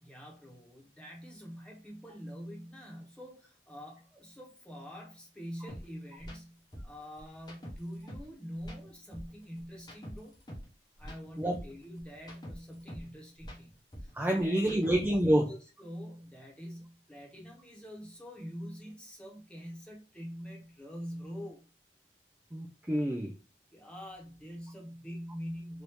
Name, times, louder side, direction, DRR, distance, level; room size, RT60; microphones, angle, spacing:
voice 1, 0.0-10.4 11.0-15.0 15.4-21.6 23.7-25.8, equal, 5° left, 1.1 m, -45 dB
sound 1, 5.7-5.8 6.2-6.4 6.7-8.3 8.6-10.7 11.0-13.1 13.4-15.2, equal, 25° left, 0.8 m, -45 dB
voice 2, 14.1-15.5 22.5-23.3, right 1 dB, 10° right, 0.3 m, -27 dB
3.1 x 2.7 x 3.1 m
head